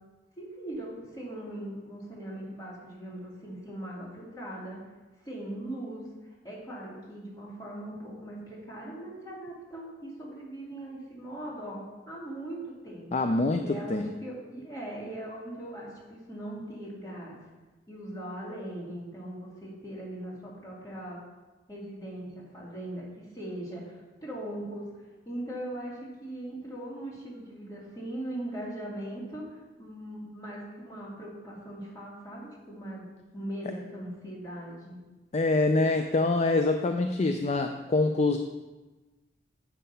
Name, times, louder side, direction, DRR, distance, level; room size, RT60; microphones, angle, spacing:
voice 1, 0.4-4.8 5.2-13.1 13.6-17.4 17.9-21.2 21.7-24.9 25.3-33.0 33.3-35.0, right 1 dB, 20° left, -5 dB, 2.6 m, -40 dB
voice 2, 13.1-13.6 13.9-14.1 35.3-38.4, left 2 dB, 40° left, 6 dB, 0.4 m, -25 dB
8.2 x 5.7 x 5.5 m, 1.2 s
head